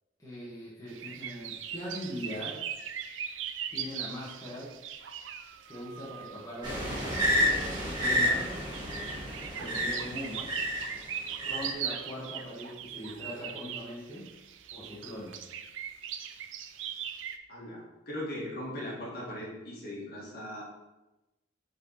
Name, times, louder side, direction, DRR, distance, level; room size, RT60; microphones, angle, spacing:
voice 1, 0.2-2.6 3.7-4.7 5.7-7.2 7.9-8.5 9.5-10.5 11.4-14.3 14.7-15.4, equal, 20° left, -7 dB, 1.7 m, -40 dB
sound 1, 0.9-17.4, right 8 dB, 85° right, 0.5 m, -40 dB
sound 2, 6.6-10.9 11.4-11.7, equal, 25° right, 2.0 m, -30 dB
voice 2, 17.5-20.6, left 1 dB, 50° left, -5 dB, 2.0 m, -39 dB
6.6 x 4.6 x 4.2 m, 1.0 s
head